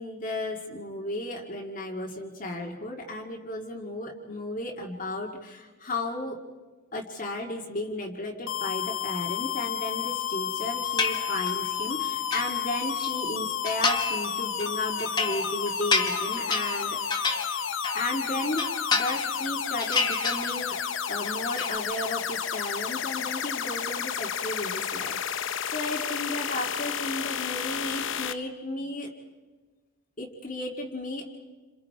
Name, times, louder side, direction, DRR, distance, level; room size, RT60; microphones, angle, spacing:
voice 1, 0.0-6.4 6.9-17.3 17.9-18.7 19.0-20.8 21.1-29.1 30.2-31.2, left 1 dB, 40° left, -1 dB, 2.1 m, -34 dB
sound 1, 8.5-28.3, left 8 dB, 60° left, 0.8 m, -31 dB
sound 2, 11.0-11.7 12.0-13.1 13.6-14.3 14.6-18.1 18.4-19.5 19.8-20.9 21.1-21.8, left 4 dB, 20° left, 1.5 m, -29 dB
29.0 x 27.0 x 4.8 m, 1.3 s
head